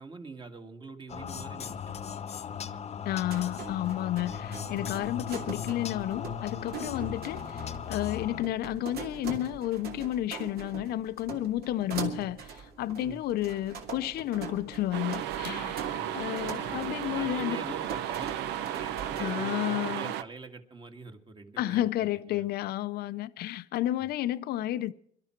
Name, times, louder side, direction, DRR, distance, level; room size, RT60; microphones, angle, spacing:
voice 1, 0.0-2.0 2.6-2.9 13.0-13.2 15.9-16.2 16.6-22.5 24.0-24.1, right 4 dB, 30° right, 1.9 m, -45 dB
sound 1, 1.1-8.4, left 7 dB, 40° left, 0.8 m, -37 dB
voice 2, 3.1-17.6 19.2-20.1 21.6-24.9, left 14 dB, 70° left, 0.6 m, -31 dB
sound 2, 3.3-19.3, right 6 dB, 65° right, 2.6 m, -42 dB
sound 3, 14.9-20.2, right 11 dB, 85° right, 0.8 m, -34 dB
23.5 x 12.5 x 4.5 m
cardioid pair, 110°, 17 cm